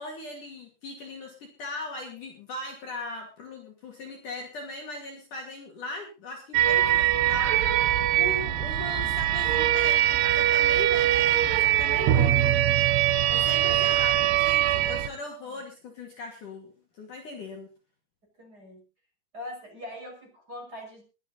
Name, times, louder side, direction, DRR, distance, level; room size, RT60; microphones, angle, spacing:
voice 1, 0.0-7.8 8.1-12.5 13.3-17.7, left 2 dB, 50° left, 1 dB, 3.6 m, -39 dB
sound 1, 6.5-15.1, right 12 dB, 90° right, 3.6 m, -22 dB
voice 2, 13.2-13.9 15.5-15.6 18.4-18.8 19.3-21.0, left 1 dB, 20° right, 1 dB, 6.3 m, -42 dB
21.5 x 10.0 x 4.0 m, 0.33 s
omnidirectional pair, 5.3 m